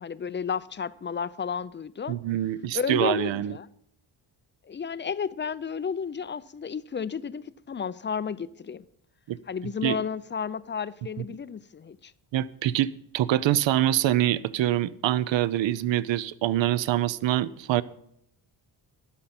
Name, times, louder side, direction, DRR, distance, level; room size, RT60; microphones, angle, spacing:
voice 1, 0.0-2.2 2.7-3.7 4.7-8.8 9.5-12.1, left 6 dB, 25° left, 0.4 m, -32 dB
voice 2, 2.1-3.6 9.3-9.4 9.8-10.0 11.2-11.3 12.3-17.8, right 13 dB, 65° right, 0.7 m, -25 dB
13.0 x 10.5 x 4.3 m
cardioid pair, 85°, 50 cm